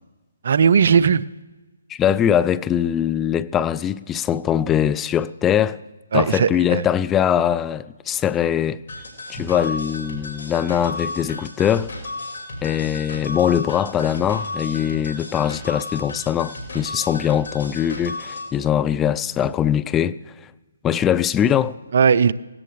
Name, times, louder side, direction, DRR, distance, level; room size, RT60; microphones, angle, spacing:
voice 1, 0.4-1.3 6.1-6.8 21.9-22.3, right 6 dB, 60° right, 0.5 m, -17 dB
voice 2, 1.9-5.8 6.1-8.8 9.3-11.9 12.6-20.2 20.8-21.8, left 9 dB, 15° left, 0.3 m, -21 dB
sound 1, 8.9-18.5, left 2 dB, 65° left, 5.0 m, -33 dB
18.0 x 17.0 x 3.3 m
figure-of-eight pair, 145°, 0 cm